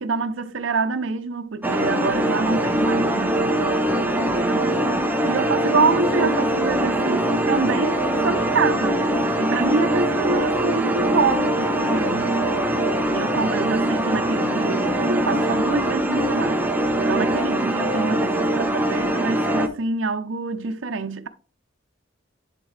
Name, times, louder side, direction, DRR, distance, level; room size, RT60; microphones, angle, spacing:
voice 1, 0.0-4.7 5.2-12.4 13.1-16.6 17.0-21.3, right 4 dB, 80° right, 0.7 m, -26 dB
sound 1, 1.6-19.7, right 1 dB, 10° right, 0.7 m, -22 dB
10.5 x 3.7 x 3.3 m
head